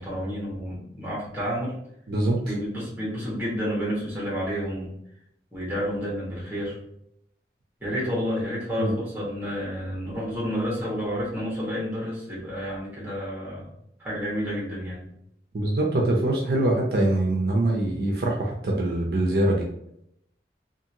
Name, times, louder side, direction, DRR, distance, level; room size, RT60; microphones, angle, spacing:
voice 1, 0.0-1.8 2.4-4.9 5.5-6.8 7.8-13.7 14.0-15.1, equal, 10° right, -6 dB, 1.1 m, -30 dB
voice 2, 2.1-2.4 8.8-8.9 15.5-19.7, right 1 dB, 60° right, -1 dB, 0.5 m, -23 dB
2.7 x 2.5 x 2.7 m, 0.75 s
head